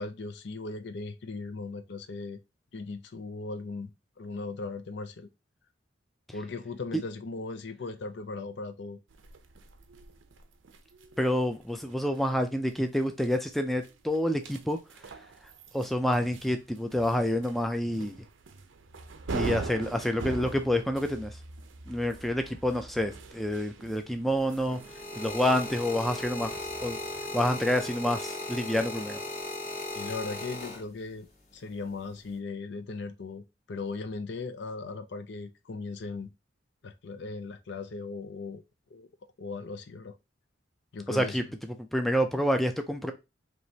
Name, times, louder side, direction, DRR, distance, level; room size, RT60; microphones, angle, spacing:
voice 1, 0.0-2.4 2.7-3.9 4.2-5.3 6.3-9.0 29.9-36.3 36.8-38.6 38.9-39.1 39.4-40.2 40.9-41.4, left 3 dB, 60° left, 0.5 m, -38 dB
sound 1, 9.1-28.1, right 4 dB, 75° right, 0.6 m, -43 dB
voice 2, 11.2-14.8 15.7-18.2 19.3-21.4 21.9-24.8 25.2-26.5 26.8-27.0 27.3-29.2 41.1-41.4 41.9-43.1, equal, ahead, 0.4 m, -28 dB
sound 2, 24.4-31.2 32.1-32.4, left 1 dB, 40° left, 1.4 m, -37 dB
4.8 x 3.0 x 2.7 m
head